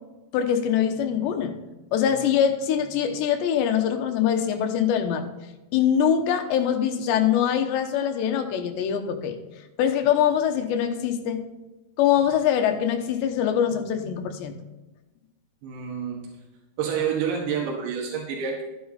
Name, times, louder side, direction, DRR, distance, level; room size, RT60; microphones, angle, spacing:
voice 1, 0.3-1.6 1.9-5.3 5.7-9.4 9.8-11.4 12.0-14.6, left 9 dB, 85° left, 6 dB, 3.3 m, -23 dB
voice 2, 15.6-16.3 16.8-18.6, right 7 dB, 90° right, -1 dB, 3.9 m, -28 dB
13.5 x 9.2 x 4.2 m, 1.1 s
omnidirectional pair, 4.9 m